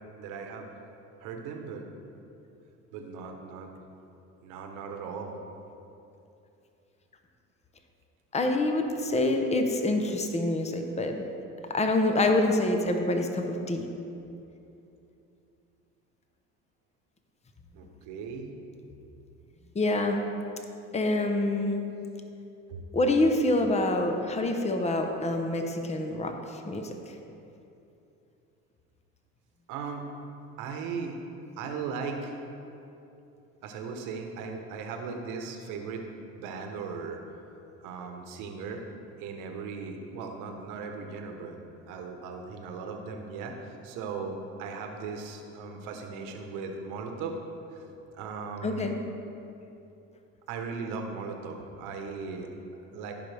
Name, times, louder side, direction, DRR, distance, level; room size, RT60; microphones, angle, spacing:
voice 1, 0.2-0.7 1.2-1.9 2.9-3.8 4.4-5.4 17.7-18.5 22.7-22.8 25.1-25.2 29.7-30.1 30.6-31.2 31.6-32.3 33.6-36.1 36.3-37.2 37.8-38.8 39.2-41.6 41.9-47.4 47.7-47.8 48.1-48.9 50.5-52.5 52.9-53.1, right 5 dB, 75° right, 4 dB, 1.2 m, -37 dB
voice 2, 8.3-11.2 11.7-13.9 19.7-20.2 20.9-21.8 22.9-27.1 48.6-48.9, left 2 dB, 20° left, 4 dB, 1.0 m, -26 dB
15.0 x 5.5 x 3.5 m, 2.8 s
supercardioid pair, 90°, 31 cm